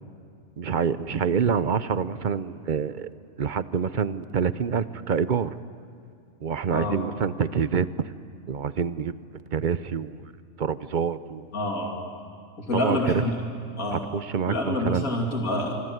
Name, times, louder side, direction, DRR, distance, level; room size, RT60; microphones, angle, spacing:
voice 1, 0.6-3.1 3.4-5.5 6.4-7.9 8.5-9.1 9.5-10.2 10.6-11.5 12.7-13.0 13.9-15.1, right 7 dB, 45° right, 14 dB, 0.7 m, -26 dB
voice 2, 11.5-12.0 12.6-13.4 13.8-14.1 14.5-15.8, left 1 dB, 85° left, 0 dB, 3.2 m, -27 dB
26.5 x 24.0 x 8.0 m, 2.5 s
omnidirectional pair, 1.4 m